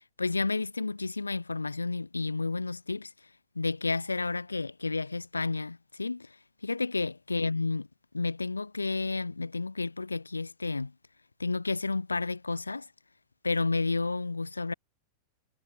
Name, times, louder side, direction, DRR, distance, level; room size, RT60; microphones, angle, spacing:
voice 1, 0.2-3.1 3.5-6.3 6.6-7.9 8.1-10.9 11.4-12.9 13.4-14.7, left 3 dB, 80° left, 1.5 m, -31 dB
figure-of-eight pair, 90°, 0 cm